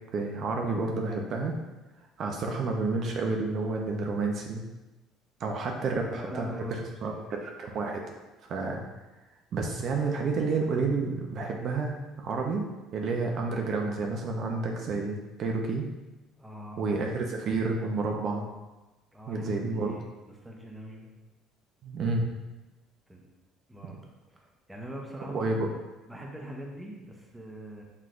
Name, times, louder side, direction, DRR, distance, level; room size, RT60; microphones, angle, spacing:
voice 1, 0.1-1.6 2.2-4.6 5.4-8.0 8.4-8.8 9.5-15.9 16.8-18.5 19.3-20.0 21.8-22.3 25.3-25.6, right 3 dB, 50° right, 1 dB, 0.5 m, -30 dB
voice 2, 5.7-6.8 7.1-7.3 16.4-16.8 19.1-21.1 23.1-23.3 23.7-24.0 24.3-25.7 26.1-27.8, right 1 dB, 10° right, -1 dB, 0.7 m, -43 dB
5.8 x 3.2 x 2.5 m, 1.1 s
cardioid pair, 130°, 0 cm